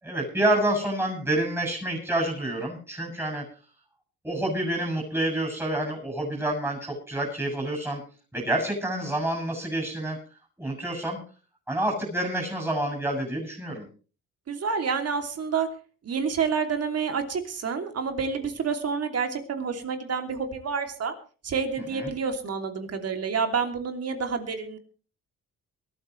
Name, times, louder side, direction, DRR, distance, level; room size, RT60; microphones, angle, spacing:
voice 1, 0.0-3.4 4.2-8.0 8.3-10.2 10.6-11.2 11.7-13.9 21.9-22.1, right 1 dB, 10° right, -1 dB, 7.6 m, -28 dB
voice 2, 14.5-15.7 16.0-21.1 21.4-24.8, right 5 dB, 55° right, 6 dB, 2.9 m, -28 dB
22.5 x 13.5 x 3.2 m, 0.38 s
cardioid pair, 90°, 30 cm